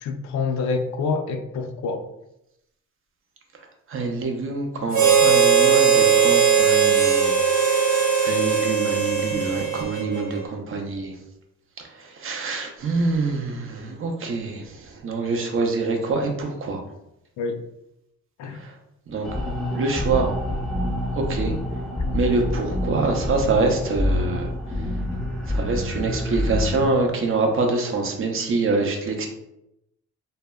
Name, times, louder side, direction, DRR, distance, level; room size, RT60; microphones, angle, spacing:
voice 1, 0.0-2.0 17.4-17.6 18.4-18.6, left 4 dB, 70° left, 6 dB, 0.4 m, -26 dB
voice 2, 3.9-11.1 11.8-16.8 18.5-18.7 19.1-19.3 19.7-20.4 21.1-21.6 22.1-24.9 25.5-29.3, right 3 dB, 45° right, 3 dB, 0.6 m, -25 dB
Harmonica, 4.9-10.4, right 7 dB, 85° right, 1.0 m, -19 dB
sound 1, 19.2-26.8, left 1 dB, ahead, 0.7 m, -27 dB
2.1 x 2.0 x 3.4 m, 0.83 s
cardioid pair, 90°, 30 cm